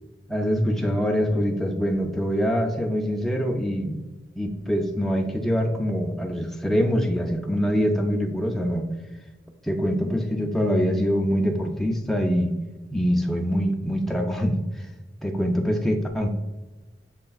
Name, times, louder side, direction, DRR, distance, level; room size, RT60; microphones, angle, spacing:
voice 1, 0.3-4.0 4.4-8.9 9.6-12.5 12.9-14.9 15.2-16.3, equal, ahead, 1 dB, 0.4 m, -24 dB
6.8 x 3.2 x 2.3 m, 1.2 s
head